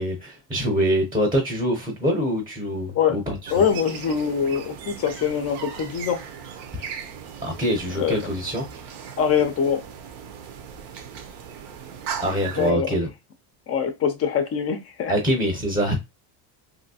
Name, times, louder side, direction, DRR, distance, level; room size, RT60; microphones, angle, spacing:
voice 1, 0.0-3.6 7.4-8.7 12.2-13.1 15.1-15.9, equal, 10° right, 0.6 m, -24 dB
sound 1, 3.4-12.7, right 7 dB, 85° right, 0.8 m, -38 dB
voice 2, 3.5-6.2 8.0-8.1 9.2-9.8 12.6-13.0 13.7-15.1, left 7 dB, 35° left, 0.4 m, -23 dB
3.1 x 2.7 x 2.7 m
cardioid pair, 140°, 48 cm